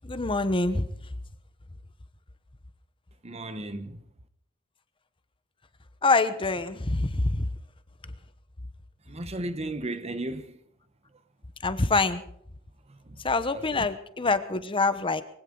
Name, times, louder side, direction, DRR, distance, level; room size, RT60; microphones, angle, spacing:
voice 1, 0.0-0.9 6.0-7.5 11.6-12.2 13.2-15.2, left 3 dB, 25° left, 1.0 m, -25 dB
voice 2, 3.2-4.0 9.1-10.6 13.1-13.2 13.5-13.9, right 1 dB, 30° right, 1.0 m, -35 dB
22.0 x 16.5 x 3.9 m
head